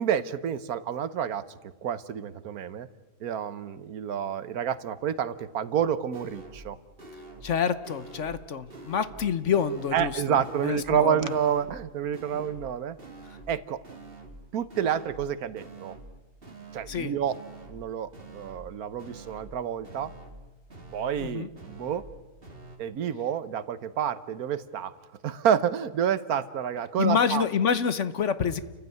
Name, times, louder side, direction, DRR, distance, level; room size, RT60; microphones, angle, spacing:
voice 1, 0.0-1.4 1.8-2.9 3.2-6.8 9.9-13.0 13.5-13.8 14.5-15.9 16.7-17.3 17.7-20.1 20.9-22.0 22.8-24.9 25.2-27.4, right 8 dB, 90° right, 15 dB, 1.4 m, -29 dB
sound 1, 6.1-6.7 7.0-7.6 7.8-8.4 8.7-9.3 9.6-10.1 10.4-11.0 11.3-11.8 12.1-12.7 13.0-13.6 13.8-14.4 14.7-15.3 15.6-16.1 16.4-17.0 17.3-17.8 18.1-18.7 19.0-19.6 19.8-20.4 20.7-21.3 21.5-22.1 22.4-22.8, right 2 dB, 40° right, 2.6 m, -46 dB
voice 2, 7.4-11.3 13.3-13.4 16.9-17.1 21.2-21.5 27.0-28.6, left 7 dB, 60° left, 13 dB, 1.3 m, -27 dB
30.0 x 15.5 x 9.3 m, 1.2 s
omnidirectional pair, 1.5 m